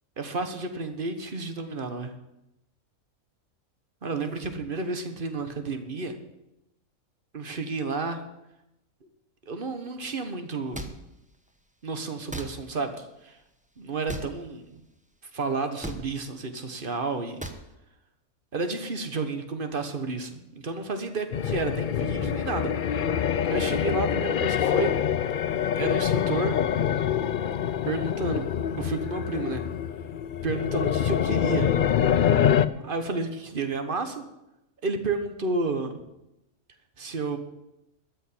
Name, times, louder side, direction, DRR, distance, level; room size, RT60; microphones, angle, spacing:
voice 1, 0.2-2.1 4.0-6.2 7.3-8.2 9.5-11.0 11.8-13.3 13.8-14.7 15.3-17.5 18.5-22.7 23.5-24.9 25.8-26.6 27.8-28.5 28.8-29.6 30.4-31.7 32.7-34.2 34.8-36.0 37.0-37.4, right 3 dB, 40° right, 8 dB, 1.4 m, -31 dB
sound 1, 10.7-10.9 12.3-12.5 14.1-14.3 15.8-16.0 17.4-17.6, right 1 dB, 5° right, 0.9 m, -34 dB
sound 2, 21.3-32.7, left 9 dB, 70° left, 0.4 m, -25 dB
13.0 x 6.6 x 9.9 m, 0.91 s
omnidirectional pair, 1.5 m